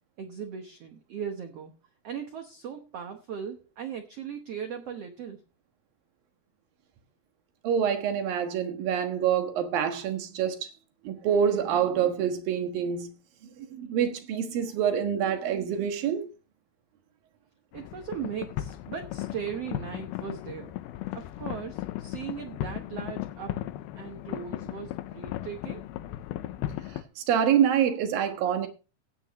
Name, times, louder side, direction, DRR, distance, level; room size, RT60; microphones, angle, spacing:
voice 1, 0.2-1.7 2.0-5.4 17.7-20.7 21.1-23.6 23.9-25.8, right 7 dB, 90° right, 1.3 m, -38 dB
voice 2, 7.6-10.6 11.0-13.1 13.6-16.3 27.2-28.7, right 8 dB, 70° right, 3.0 m, -26 dB
sound 1, 17.7-27.0, left 14 dB, 80° left, 2.6 m, -36 dB
17.0 x 9.3 x 3.0 m
omnidirectional pair, 4.5 m